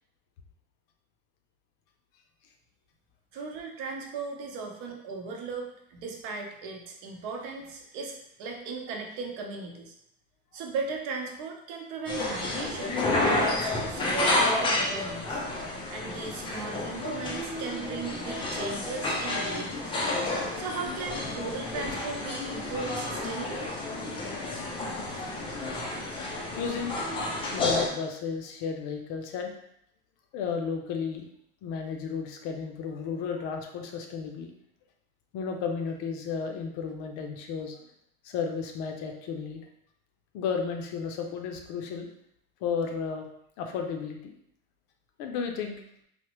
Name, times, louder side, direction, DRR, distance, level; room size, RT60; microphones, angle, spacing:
voice 1, 3.3-9.9 10.5-12.9 13.2-15.4 15.9-20.0 20.6-23.7, right 4 dB, 70° right, 1 dB, 0.8 m, -37 dB
sound 1, 12.1-27.9, left 2 dB, 15° left, 0.3 m, -30 dB
voice 2, 26.6-26.9 27.4-29.5 30.3-31.3 31.6-34.5 35.3-37.8 38.2-39.6 40.3-42.1 42.6-43.3 43.6-44.3 45.2-45.8, left 6 dB, 60° left, 4 dB, 0.6 m, -33 dB
3.4 x 2.0 x 2.9 m, 0.73 s
cardioid pair, 140°, 33 cm